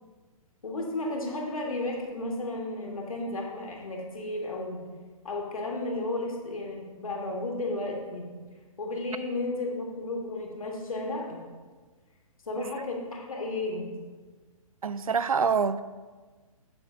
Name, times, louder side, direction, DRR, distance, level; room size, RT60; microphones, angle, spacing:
voice 1, 0.6-4.8 5.2-8.3 8.8-11.4 12.5-13.9, left 2 dB, 70° left, 1.9 m, -33 dB
voice 2, 14.8-15.8, right 6 dB, 75° right, 0.5 m, -26 dB
15.0 x 6.1 x 2.7 m
figure-of-eight pair, 120°, 19 cm